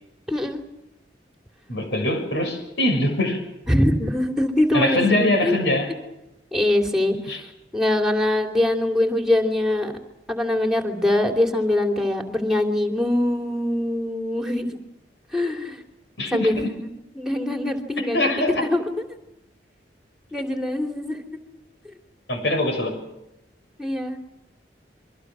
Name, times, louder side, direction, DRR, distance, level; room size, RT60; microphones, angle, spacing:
voice 1, 0.3-0.6 3.7-5.6 6.5-7.5 7.7-9.9 10.3-14.8 15.3-15.8 16.3-16.9 17.1-18.3 18.6-18.9 20.3-21.2 23.8-24.2, left 1 dB, 5° right, 3 dB, 2.9 m, -23 dB
voice 2, 1.7-3.4 4.7-5.9 7.3-7.4 16.2-16.7 18.0-18.6 22.3-23.0, left 1 dB, 85° left, 5 dB, 6.5 m, -23 dB
27.5 x 24.5 x 6.3 m, 0.93 s
head